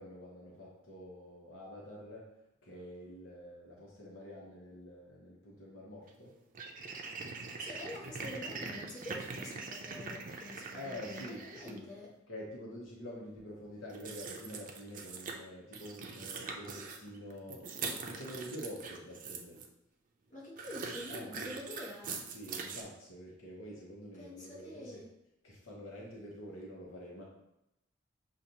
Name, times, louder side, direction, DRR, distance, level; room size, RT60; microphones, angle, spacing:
voice 1, 0.0-2.3 2.6-6.4 10.7-11.8 12.3-17.7 18.1-19.6 21.1-21.6 22.3-25.0 25.4-27.2, equal, 75° left, -3 dB, 0.9 m, -47 dB
sound 1, 6.1-6.2 6.5-11.8 13.9-15.3 15.7-19.7 20.6-22.8, right 4 dB, 45° right, 0.5 m, -42 dB
voice 2, 7.6-12.1 20.3-22.3 24.2-25.1, left 1 dB, 40° left, -5 dB, 1.2 m, -47 dB
6.6 x 2.5 x 2.8 m, 0.86 s
head